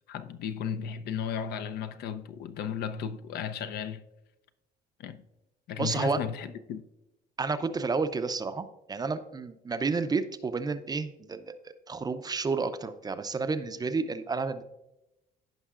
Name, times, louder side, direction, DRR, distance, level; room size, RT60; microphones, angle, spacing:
voice 1, 0.1-4.0 5.0-5.2 5.7-6.8, left 7 dB, 70° left, 0.6 m, -35 dB
voice 2, 5.8-6.2 7.4-14.6, right 4 dB, 25° right, 0.5 m, -31 dB
15.5 x 5.4 x 2.4 m
cardioid pair, 110°, 17 cm